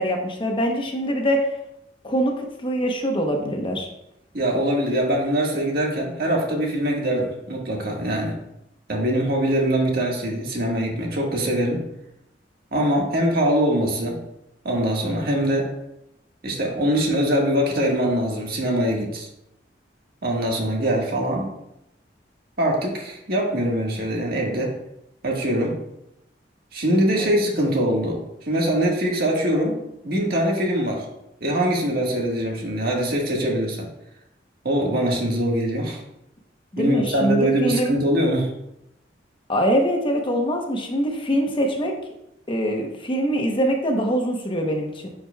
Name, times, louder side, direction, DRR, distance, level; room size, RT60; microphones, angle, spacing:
voice 1, 0.0-1.5 2.0-3.9 27.1-27.3 36.7-38.0 39.5-41.9 42.5-45.1, equal, 30° left, 2 dB, 0.9 m, -23 dB
voice 2, 4.3-8.4 8.9-11.8 12.7-14.2 14.6-15.7 16.4-19.3 20.2-21.5 22.6-24.8 25.2-25.8 26.7-28.2 28.5-29.8 30.0-31.0 31.4-33.9 34.6-36.0 36.8-38.5, right 1 dB, 60° right, -1 dB, 1.6 m, -23 dB
9.9 x 5.0 x 2.3 m, 0.82 s
head